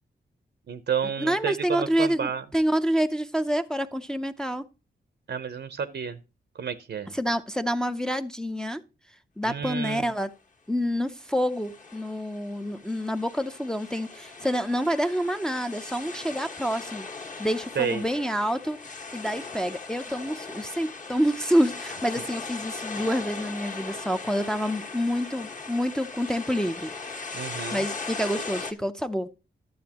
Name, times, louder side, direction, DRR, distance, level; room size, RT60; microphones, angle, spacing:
voice 1, 0.7-2.4 5.3-6.2 6.5-7.1 9.5-10.1 17.8-18.0 27.3-27.8, right 7 dB, 70° right, 12 dB, 0.8 m, -30 dB
voice 2, 1.2-4.6 7.1-8.8 9.4-10.3 10.7-26.9 27.7-29.3, equal, 5° left, 8 dB, 0.6 m, -27 dB
sound 1, 11.3-28.7, left 4 dB, 45° left, 1.6 m, -39 dB
12.0 x 7.5 x 2.9 m, 0.30 s
wide cardioid pair, 120°, 18 cm